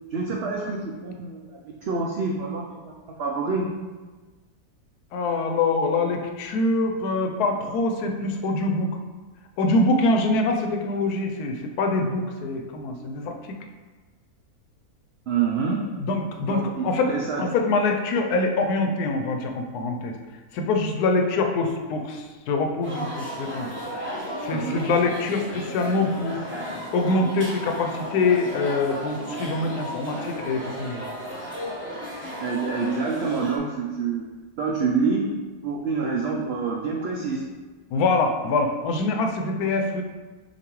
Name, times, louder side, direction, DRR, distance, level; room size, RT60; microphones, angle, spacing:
voice 1, 0.1-3.7 15.3-15.9 16.5-17.4 24.5-24.8 32.4-34.3 34.6-35.3 35.6-37.5, right 4 dB, 75° right, -2 dB, 0.5 m, -27 dB
voice 2, 5.1-8.9 9.6-13.5 16.0-17.1 17.4-20.1 20.5-24.1 24.4-26.4 26.9-31.1 37.9-40.0, left 3 dB, 80° left, 4 dB, 1.1 m, -24 dB
sound 1, 22.8-33.6, equal, 10° right, 0.8 m, -34 dB
6.7 x 2.6 x 3.0 m, 1.3 s
omnidirectional pair, 1.6 m